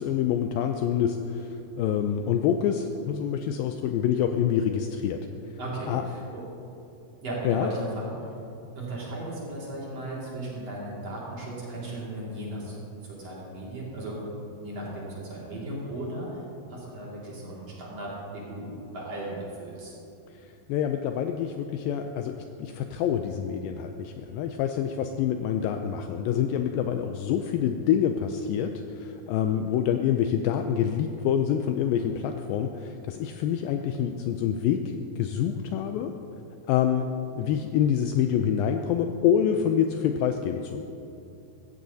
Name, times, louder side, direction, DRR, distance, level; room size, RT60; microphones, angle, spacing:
voice 1, 0.0-5.2 5.9-6.0 7.5-7.7 20.4-36.1 36.7-37.1 37.3-40.8, left 9 dB, 85° left, 6 dB, 2.1 m, -26 dB
voice 2, 5.6-6.4 7.2-8.1 8.7-12.7 13.0-14.2 14.5-16.4 16.7-19.9, right 1 dB, 45° right, -6 dB, 3.0 m, -36 dB
15.5 x 14.0 x 2.7 m, 2.8 s
omnidirectional pair, 4.5 m